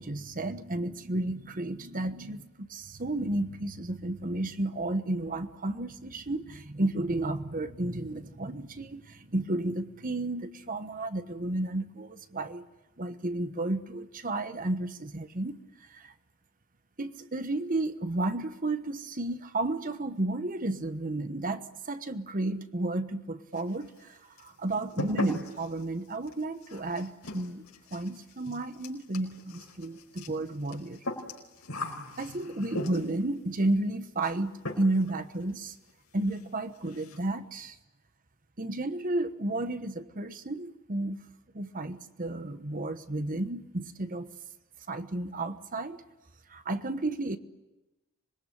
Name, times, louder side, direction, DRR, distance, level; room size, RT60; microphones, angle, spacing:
voice 1, 0.0-12.6 13.0-15.6 15.9-16.1 17.0-27.6 27.9-31.0 32.2-35.7 36.1-37.7 38.6-41.2 41.5-44.3 44.9-46.0 46.5-47.4, right 2 dB, 40° right, 10 dB, 1.2 m, -32 dB
sound 1, 23.5-24.1 24.4-33.3 34.2-34.4 34.6-35.1 35.4-35.5 35.9-36.0 36.3-36.4 36.7-37.2, left 2 dB, 85° left, 5.0 m, -40 dB
26.5 x 21.5 x 10.0 m, 1.0 s
head